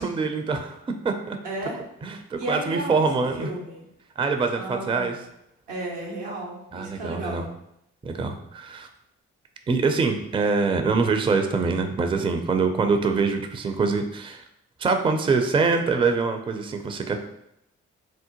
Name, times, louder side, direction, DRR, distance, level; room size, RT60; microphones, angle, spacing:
voice 1, 0.0-1.4 2.0-3.5 4.2-5.2 6.7-7.4 8.0-8.9 9.7-14.4 14.8-17.2, right 4 dB, 15° right, 6 dB, 0.4 m, -24 dB
voice 2, 1.4-1.8 2.4-3.1 3.4-3.8 4.5-5.1 5.7-7.5, right 2 dB, 80° right, -2 dB, 0.9 m, -33 dB
3.5 x 2.1 x 2.9 m, 0.79 s
hypercardioid pair, 40°, 32 cm